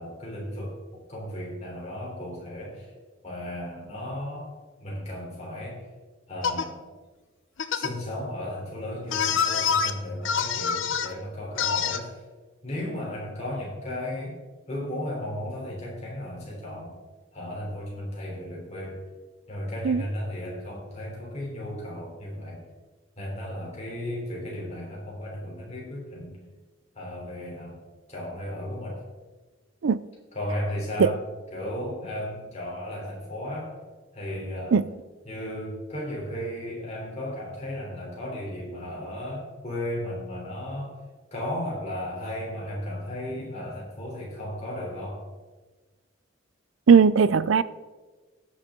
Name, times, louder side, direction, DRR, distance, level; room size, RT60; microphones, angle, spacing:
voice 1, 0.0-2.9 3.2-4.5 4.8-5.8 6.3-6.8 7.7-12.2 12.6-14.4 14.7-16.9 17.3-19.0 19.5-22.6 23.2-26.4 27.0-27.8 28.1-29.0 30.3-31.2 31.5-33.7 34.1-34.8 35.2-40.9 41.3-45.2, left 1 dB, 30° left, 3.6 m, -35 dB
sound 1, 6.4-6.6 7.6-7.9 9.1-9.9 10.2-11.1 11.6-12.0, left 7 dB, 70° left, 0.7 m, -25 dB
voice 2, 46.9-47.6, right 6 dB, 75° right, 0.4 m, -18 dB
18.5 x 6.5 x 3.7 m
head